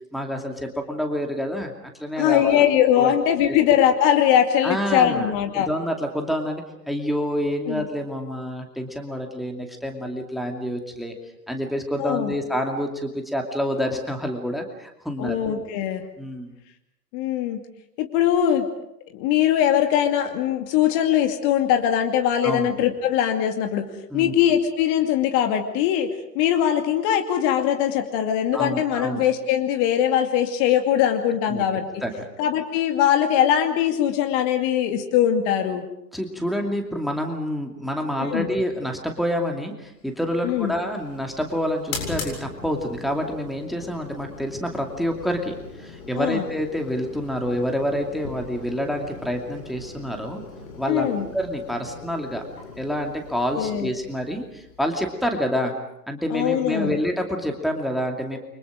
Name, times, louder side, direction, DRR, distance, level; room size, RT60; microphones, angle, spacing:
voice 1, 0.1-1.7 2.0-2.6 3.0-3.1 4.6-11.1 11.5-15.4 16.2-16.5 22.4-22.7 24.1-24.3 28.5-29.2 31.4-31.6 32.0-32.3 36.1-50.4 50.8-52.4 52.8-55.7 56.1-58.4, equal, ahead, 3 dB, 2.6 m, -27 dB
voice 2, 2.2-5.7 7.7-7.8 12.0-12.3 15.2-16.0 17.1-17.6 18.0-18.7 19.1-23.9 24.1-26.1 26.3-31.9 32.4-35.8 38.2-38.5 40.4-40.8 46.2-46.5 50.9-51.3 53.6-53.9 56.3-57.0, left 10 dB, 35° left, 5 dB, 2.5 m, -21 dB
sound 1, 40.1-55.4, left 4 dB, 55° left, 7.9 m, -40 dB
29.5 x 25.0 x 5.1 m, 0.84 s
figure-of-eight pair, 100°, 49 cm